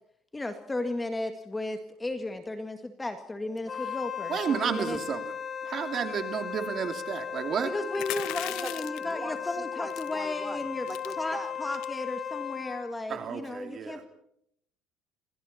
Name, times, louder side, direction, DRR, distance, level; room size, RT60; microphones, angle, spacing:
voice 1, 0.3-5.0 7.6-14.1, left 2 dB, 10° left, 7 dB, 1.9 m, -34 dB
Wind instrument woodwind instrument, 3.6-12.9, left 7 dB, 25° left, 2.5 m, -36 dB
voice 2, 4.3-5.2 5.7-7.7 13.1-14.0, right 7 dB, 35° right, 6 dB, 2.8 m, -31 dB
sound 1, 7.9-9.1 9.9-10.2 10.6-10.7 10.9-11.1 11.7-12.0, left 16 dB, 70° left, 1.3 m, -37 dB
voice 3, 8.6-11.8, right 2 dB, 10° right, 7 dB, 3.5 m, -42 dB
29.0 x 26.0 x 4.3 m, 0.72 s
cardioid pair, 145°, 0 cm